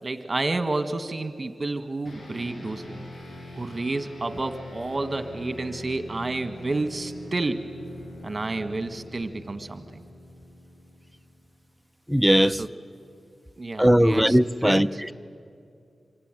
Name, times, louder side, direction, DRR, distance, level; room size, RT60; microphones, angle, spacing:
voice 1, 0.0-3.0 3.5-7.7 8.2-10.0 12.6-12.7 13.6-15.0, right 2 dB, 40° right, 1.7 m, -30 dB
sound 1, 2.0-11.7, left 1 dB, 65° left, 5.1 m, -43 dB
voice 2, 12.1-12.6 13.8-15.1, equal, ahead, 0.6 m, -19 dB
26.0 x 24.5 x 9.2 m
cardioid pair, 65°, 0 cm